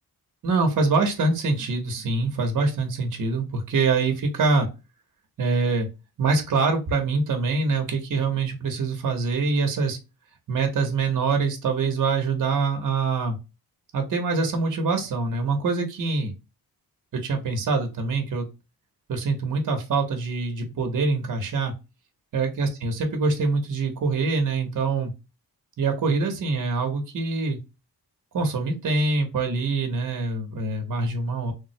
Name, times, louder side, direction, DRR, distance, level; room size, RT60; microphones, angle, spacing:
voice 1, 0.4-4.7 5.4-5.9 6.2-10.0 10.5-13.4 13.9-16.3 17.1-18.5 19.1-21.7 22.3-25.1 25.8-27.6 28.3-31.5, right 4 dB, 50° right, 4 dB, 0.8 m, -24 dB
3.4 x 2.1 x 2.6 m, 0.27 s
wide cardioid pair, 145°, 39 cm